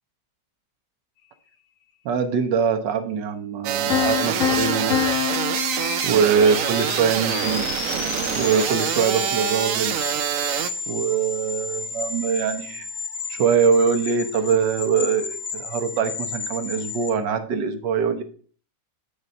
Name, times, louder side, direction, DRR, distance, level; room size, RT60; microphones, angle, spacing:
voice 1, 2.0-5.3 6.0-7.7 8.4-10.0 10.9-12.9 13.3-18.2, right 6 dB, 90° right, 6 dB, 1.6 m, -23 dB
sound 1, 3.6-10.7, right 11 dB, 75° right, 0.8 m, -25 dB
Piano, 3.9-6.8, left 11 dB, 55° left, 1.2 m, -26 dB
sound 2, 4.2-17.1, left 5 dB, 75° left, 1.6 m, -33 dB
8.8 x 4.0 x 5.3 m, 0.43 s
omnidirectional pair, 1.9 m